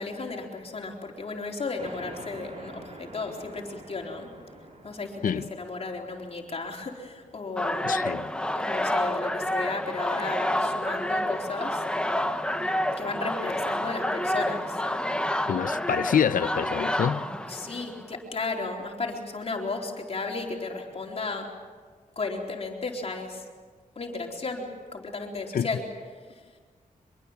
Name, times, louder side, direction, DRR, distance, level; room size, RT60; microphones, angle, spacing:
voice 1, 0.0-4.3 4.8-7.9 8.5-11.8 13.0-14.8 17.5-21.5 22.2-23.5 24.0-25.9, left 3 dB, 45° left, 4.1 m, -34 dB
sound 1, 1.8-8.9, right 1 dB, 45° right, 4.5 m, -47 dB
sound 2, 7.6-18.0, left 1 dB, 5° left, 1.1 m, -29 dB
voice 2, 7.8-8.3 15.5-17.2 25.5-25.7, left 8 dB, 70° left, 0.7 m, -26 dB
24.5 x 22.5 x 7.3 m
wide cardioid pair, 105°, 15 cm